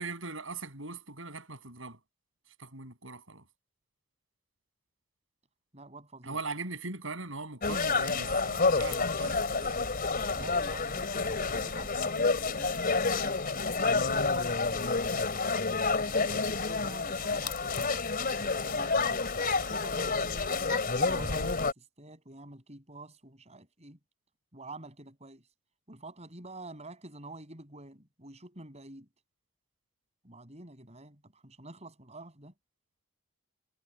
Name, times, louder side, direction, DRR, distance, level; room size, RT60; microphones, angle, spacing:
voice 1, 0.0-2.0 2.6-3.4 6.2-9.6 18.9-19.1, right 3 dB, 70° right, 7.4 m, -40 dB
voice 2, 5.7-6.4 10.3-13.4 13.9-15.4 16.0-17.9 18.3-19.0 19.6-24.0 24.5-25.4 25.9-29.1 30.2-32.5, right 2 dB, 30° right, 7.9 m, -48 dB
sound 1, 7.6-21.7, left 4 dB, 45° left, 3.5 m, -29 dB
head